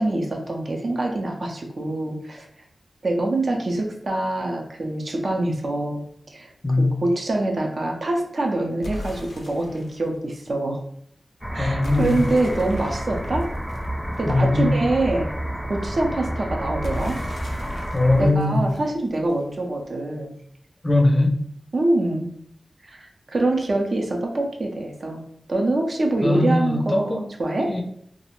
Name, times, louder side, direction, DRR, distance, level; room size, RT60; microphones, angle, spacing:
voice 1, 0.0-2.5 3.0-6.0 6.3-6.5 6.8-10.8 11.5-13.5 14.2-15.3 15.7-17.2 18.2-20.3 21.7-22.3 22.8-25.2 25.5-27.7, right 2 dB, 65° right, 1 dB, 0.5 m, -25 dB
voice 2, 6.6-7.0 11.6-12.2 14.3-14.7 17.9-18.6 20.8-21.4 26.2-27.2 27.7-27.8, left 2 dB, 40° left, 3 dB, 0.4 m, -20 dB
sound 1, 8.8-10.1 11.8-14.5 16.8-19.5, left 1 dB, 90° left, 0.5 m, -37 dB
sound 2, 11.4-18.3, right 1 dB, 10° right, 0.6 m, -30 dB
2.4 x 2.0 x 2.9 m, 0.67 s
cardioid pair, 50°, 0 cm